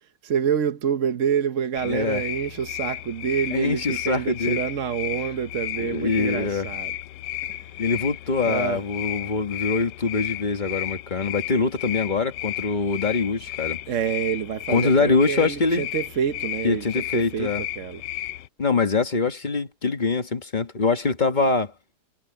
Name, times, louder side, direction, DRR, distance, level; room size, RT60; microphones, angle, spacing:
voice 1, 0.2-6.9 8.4-8.8 13.9-18.0, right 8 dB, 50° right, 1.1 m, -27 dB
sound 1, 1.8-18.5, left 13 dB, 75° left, 1.2 m, -33 dB
voice 2, 1.8-2.2 3.5-4.6 5.8-6.7 7.8-13.8 14.7-15.9 16.6-17.6 18.6-21.7, left 4 dB, 25° left, 1.6 m, -24 dB
omnidirectional pair, 1.9 m